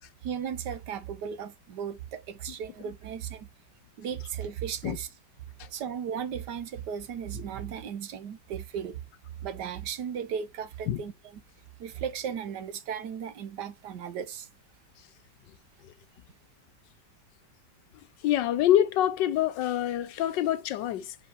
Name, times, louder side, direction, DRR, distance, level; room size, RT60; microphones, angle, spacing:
voice 1, 0.2-3.5 4.0-5.1 5.7-9.0 9.4-11.1 11.8-14.5, right 8 dB, 70° right, 1.4 m, -36 dB
voice 2, 18.2-21.2, left 11 dB, 80° left, 1.4 m, -26 dB
9.9 x 4.5 x 2.9 m
omnidirectional pair, 1.9 m